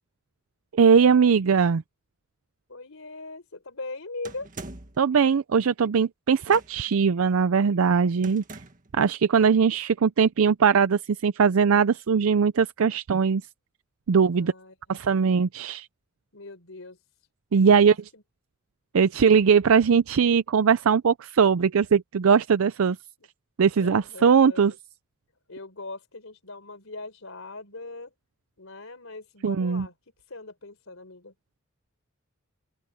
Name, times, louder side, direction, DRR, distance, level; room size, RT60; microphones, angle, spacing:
voice 1, 0.7-1.8 5.0-8.4 8.9-13.4 14.1-14.5 14.9-15.9 17.5-18.1 18.9-23.0 23.6-24.7 29.4-29.9, right 6 dB, 80° right, 0.5 m, -20 dB
voice 2, 2.7-4.5 14.1-14.7 16.3-17.0 17.6-18.2 23.8-24.8 25.5-28.1 28.6-29.9 30.3-31.3, left 3 dB, 75° left, 4.1 m, -40 dB
sound 1, 4.2-5.1 6.4-7.0 8.2-8.9, right 3 dB, 40° right, 1.7 m, -42 dB
open air
head